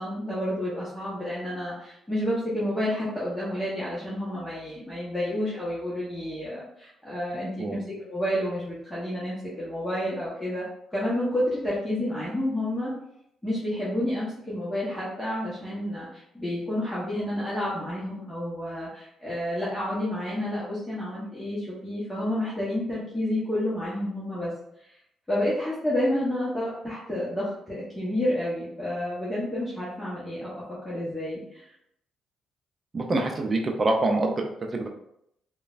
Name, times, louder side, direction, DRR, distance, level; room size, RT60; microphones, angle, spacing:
voice 1, 0.0-10.6 10.9-12.9 13.4-24.5 25.3-30.5 30.8-31.7, left 1 dB, 10° left, -9 dB, 0.9 m, -30 dB
voice 2, 32.9-34.9, right 2 dB, 30° right, 2 dB, 0.4 m, -26 dB
3.1 x 2.1 x 2.4 m, 0.75 s
cardioid pair, 90°, 0 cm